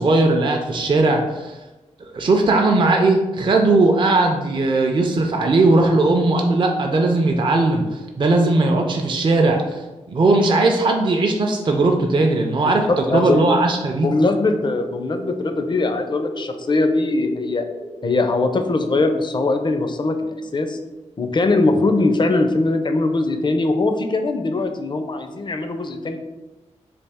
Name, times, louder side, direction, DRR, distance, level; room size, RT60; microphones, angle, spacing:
voice 1, 0.0-1.6 2.1-14.1, right 2 dB, 40° right, 2 dB, 0.4 m, -18 dB
voice 2, 13.1-13.4 14.0-17.6 18.0-20.2 20.5-20.8 21.2-26.2, left 2 dB, 35° left, 6 dB, 0.4 m, -21 dB
sound 1, 14.0-19.1, right 1 dB, 60° right, 0.9 m, -37 dB
3.4 x 2.4 x 3.4 m, 1.1 s
cardioid pair, 55°, 13 cm